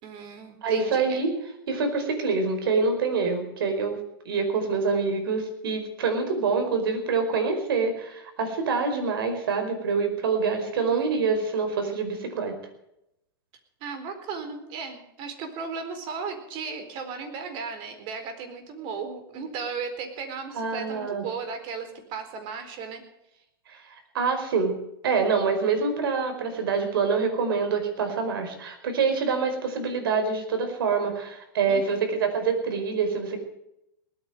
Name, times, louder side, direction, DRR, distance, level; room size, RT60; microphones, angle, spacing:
voice 1, 0.0-1.2 10.9-11.3 13.8-23.0 31.7-32.3, right 5 dB, 45° right, 7 dB, 4.2 m, -36 dB
voice 2, 0.6-1.3 1.7-4.0 4.2-12.5 20.5-21.2 23.7-23.8 24.1-24.8 25.0-33.6, right 5 dB, 80° right, 7 dB, 4.9 m, -26 dB
19.5 x 9.3 x 7.8 m, 0.82 s
hypercardioid pair, 125°, 12 cm